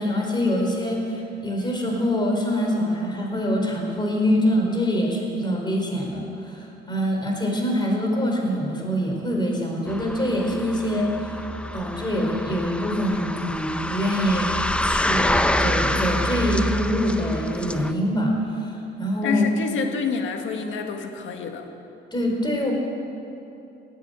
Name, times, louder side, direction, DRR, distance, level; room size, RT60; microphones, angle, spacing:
voice 1, 0.0-11.4 11.7-14.5 14.8-19.5 22.1-22.7, equal, 20° left, 0 dB, 4.4 m, -24 dB
sound 1, 9.9-17.9, left 1 dB, 5° left, 0.7 m, -26 dB
voice 2, 19.2-21.7, left 5 dB, 75° left, 4 dB, 1.7 m, -28 dB
19.0 x 8.9 x 8.1 m, 2.8 s
cardioid pair, 90°, 20 cm